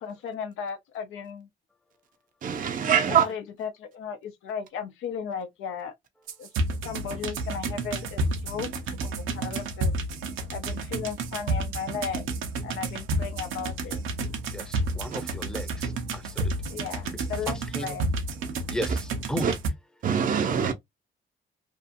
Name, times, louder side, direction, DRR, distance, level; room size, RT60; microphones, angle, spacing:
voice 1, 0.0-1.5 3.1-5.9 6.4-6.5 6.8-8.7 9.0-9.9 10.5-12.3 12.6-14.0 16.7-18.1, left 7 dB, 85° left, 0.6 m, -35 dB
voice 2, 2.4-3.3 15.1-15.2 19.4-19.5 20.0-20.7, right 8 dB, 45° right, 0.5 m, -23 dB
sound 1, 6.3-19.7, right 2 dB, 85° right, 0.7 m, -31 dB
voice 3, 14.5-16.5 17.1-18.0 18.7-19.5, equal, 5° left, 0.6 m, -36 dB
2.7 x 2.4 x 2.5 m
cardioid pair, 90°, 20 cm